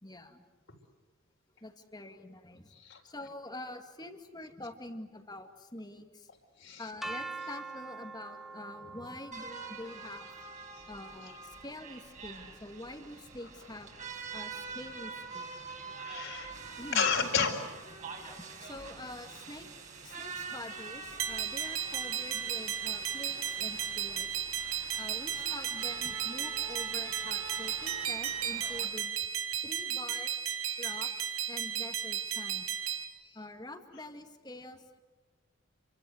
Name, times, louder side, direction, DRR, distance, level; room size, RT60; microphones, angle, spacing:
voice 1, 0.0-0.4 1.6-2.7 3.0-6.3 6.8-10.3 10.9-13.9 14.3-15.5 16.8-17.1 18.6-19.7 20.0-24.4 25.0-29.2 29.6-30.3 30.8-32.7 33.3-35.0, left 1 dB, 20° left, 6 dB, 2.3 m, -46 dB
sound 1, 7.0-12.9, right 3 dB, ahead, 1.4 m, -46 dB
sound 2, 9.3-28.8, right 5 dB, 35° right, 4.7 m, -45 dB
voice 2, 16.0-16.5 16.9-17.6 27.8-27.9, left 5 dB, 60° left, 3 dB, 4.6 m, -31 dB
sound 3, 21.2-33.0, right 9 dB, 85° right, 2.2 m, -34 dB
29.5 x 24.5 x 8.1 m, 1.3 s
head